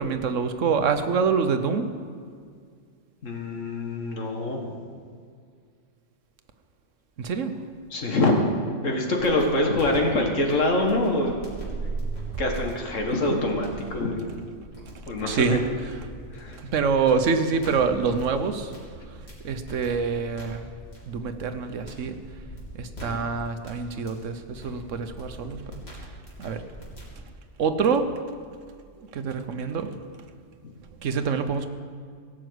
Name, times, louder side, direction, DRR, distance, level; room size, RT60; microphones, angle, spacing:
voice 1, 0.0-1.9 7.2-7.5 15.3-15.6 16.6-18.7 19.4-20.6 21.1-22.2 22.7-26.1 26.4-26.6 27.6-28.1 29.0-29.9 31.0-31.7, right 5 dB, 80° right, 8 dB, 1.2 m, -26 dB
voice 2, 3.2-4.6 7.9-8.3 8.8-11.4 12.4-14.3 15.1-15.6 16.3-16.6, left 2 dB, 85° left, 2 dB, 2.0 m, -25 dB
sound 1, 9.2-27.2, equal, 55° left, 3.5 m, -43 dB
sound 2, 11.3-13.7, right 4 dB, 45° right, 1.0 m, -34 dB
17.5 x 6.3 x 8.0 m, 2.1 s
omnidirectional pair, 1.3 m